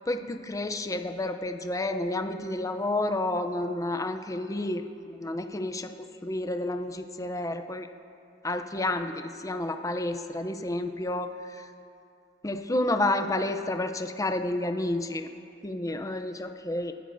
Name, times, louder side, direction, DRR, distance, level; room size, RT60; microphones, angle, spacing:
voice 1, 0.1-5.9 6.2-7.9 8.4-11.7 12.4-15.3 15.6-16.9, left 1 dB, 15° left, 7 dB, 0.6 m, -30 dB
28.5 x 11.5 x 2.6 m, 2.5 s
head